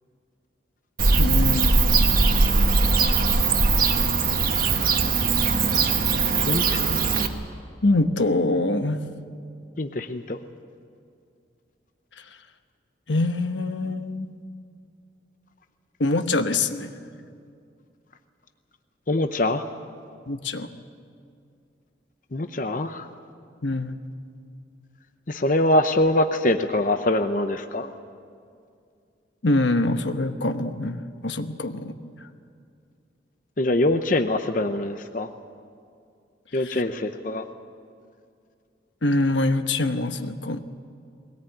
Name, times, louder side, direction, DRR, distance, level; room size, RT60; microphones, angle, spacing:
Bird / Cricket, 1.0-7.3, right 4 dB, 50° right, 1.4 m, -20 dB
voice 1, 1.2-2.0 7.8-9.0 13.1-14.4 16.0-16.9 20.3-20.7 23.6-24.0 29.4-32.1 36.5-36.8 39.0-40.6, left 2 dB, 80° left, 8 dB, 1.1 m, -24 dB
voice 2, 6.4-6.8 9.8-10.4 19.1-19.6 22.3-23.1 25.3-27.9 33.6-35.3 36.5-37.5, left 1 dB, 45° left, 7 dB, 0.8 m, -23 dB
21.5 x 18.0 x 9.2 m, 2.3 s
head